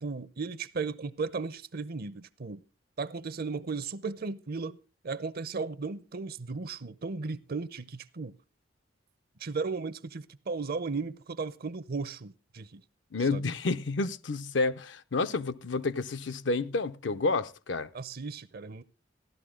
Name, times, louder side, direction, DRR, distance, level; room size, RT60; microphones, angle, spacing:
voice 1, 0.0-2.6 3.0-4.8 5.0-8.3 9.4-12.8 13.3-13.4 17.9-18.8, right 4 dB, 55° right, 0.6 m, -35 dB
voice 2, 13.1-17.9, left 3 dB, 65° left, 0.6 m, -30 dB
14.5 x 11.5 x 3.7 m
head